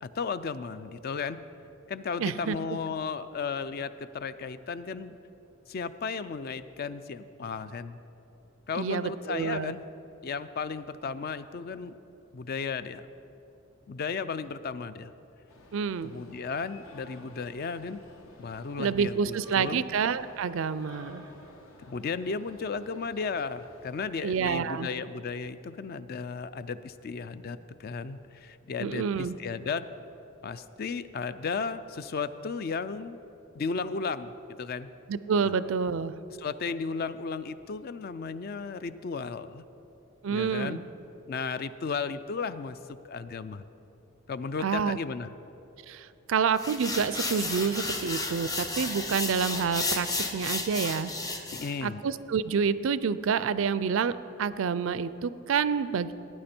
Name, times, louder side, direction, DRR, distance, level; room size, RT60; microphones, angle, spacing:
voice 1, 0.0-1.4 1.9-5.2 5.7-8.0 8.7-9.8 10.2-11.9 12.3-13.1 13.9-15.1 16.0-18.0 18.4-19.8 21.9-29.9 30.4-33.2 33.5-34.9 35.4-35.5 36.4-39.6 40.3-40.8 41.3-42.8 43.0-43.6 44.3-45.3 51.5-52.0, left 5 dB, 45° left, 13 dB, 0.4 m, -34 dB
voice 2, 2.2-2.6 8.8-9.7 15.7-16.1 18.8-21.2 24.2-24.9 28.8-29.4 35.1-36.1 40.2-40.8 44.6-45.0 45.9-50.1 50.3-51.1 51.8-56.1, right 6 dB, 65° right, 15 dB, 0.4 m, -28 dB
sound 1, 15.5-24.1, left 1 dB, 75° left, 1.3 m, -53 dB
sound 2, 46.6-51.7, left 2 dB, 15° left, 0.7 m, -32 dB
17.0 x 9.7 x 4.4 m, 2.9 s
head